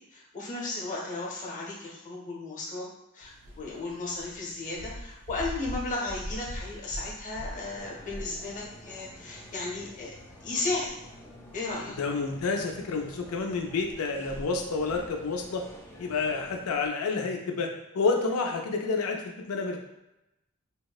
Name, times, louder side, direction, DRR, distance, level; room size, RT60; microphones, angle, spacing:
voice 1, 0.1-2.9 3.1-10.1 10.4-10.9 11.5-12.0, left 2 dB, 35° left, -4 dB, 0.7 m, -34 dB
sound 1, 3.2-16.9, equal, 60° right, 0.4 m, -45 dB
sound 2, 7.5-16.6, left 1 dB, 10° left, 0.3 m, -50 dB
voice 2, 12.0-15.6 16.0-17.7 17.9-19.8, left 4 dB, 85° left, 3 dB, 0.4 m, -29 dB
3.5 x 2.0 x 2.3 m, 0.92 s
head